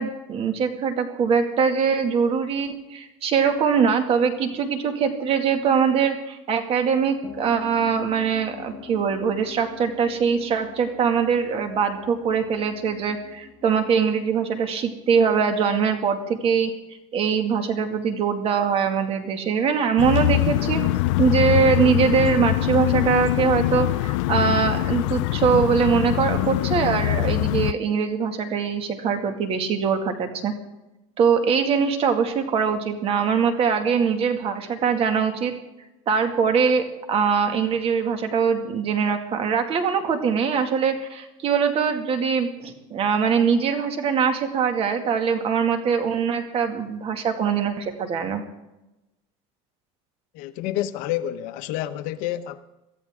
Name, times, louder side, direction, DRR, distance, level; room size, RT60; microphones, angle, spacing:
voice 1, 0.0-16.7 17.1-20.8 21.2-30.5 31.2-35.5 36.1-48.4, right 6 dB, 40° right, 2.1 m, -22 dB
sound 1, 7.2-15.4, left 6 dB, 15° left, 7.1 m, -44 dB
sound 2, 20.0-27.7, left 19 dB, 90° left, 0.4 m, -23 dB
voice 2, 50.3-52.6, left 13 dB, 65° left, 0.9 m, -29 dB
23.0 x 14.0 x 3.7 m
cardioid pair, 135°, 15 cm